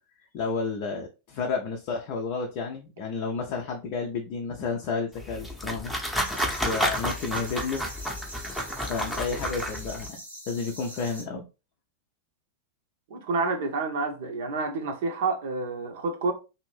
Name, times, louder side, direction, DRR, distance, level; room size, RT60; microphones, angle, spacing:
voice 1, 0.3-5.9 6.6-7.9 8.9-10.2 10.5-11.4, left 4 dB, 45° left, 0.5 m, -31 dB
sound 1, 5.1-10.1, equal, 5° left, 0.7 m, -31 dB
sound 2, 6.2-11.2, right 1 dB, 85° right, 0.9 m, -43 dB
voice 2, 13.1-16.3, right 3 dB, 55° right, 0.7 m, -29 dB
2.7 x 2.6 x 3.1 m
figure-of-eight pair, 90°, 0 cm